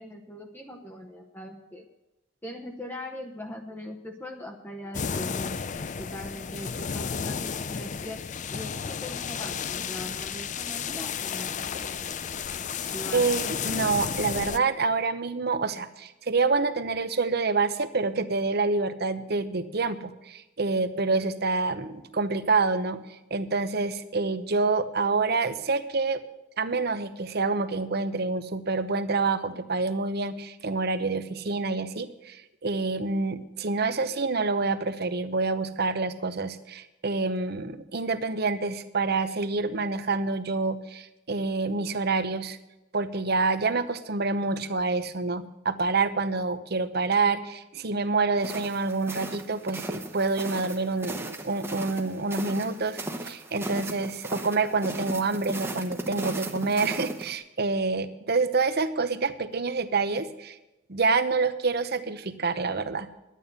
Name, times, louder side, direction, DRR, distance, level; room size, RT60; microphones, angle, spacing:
voice 1, 0.0-1.8 2.4-5.5 6.0-8.2 8.5-12.2 12.9-13.2 21.1-21.4, left 1 dB, 10° left, 2 dB, 0.9 m, -40 dB
sound 1, 4.9-14.6, left 7 dB, 40° left, 0.4 m, -32 dB
voice 2, 12.8-23.0 23.3-26.2 26.6-42.6 42.9-60.6 60.9-63.1, right 3 dB, 55° right, 12 dB, 0.9 m, -27 dB
sound 2, 48.4-57.3, right 2 dB, 15° right, 1.0 m, -36 dB
11.0 x 9.2 x 6.8 m, 1.0 s
head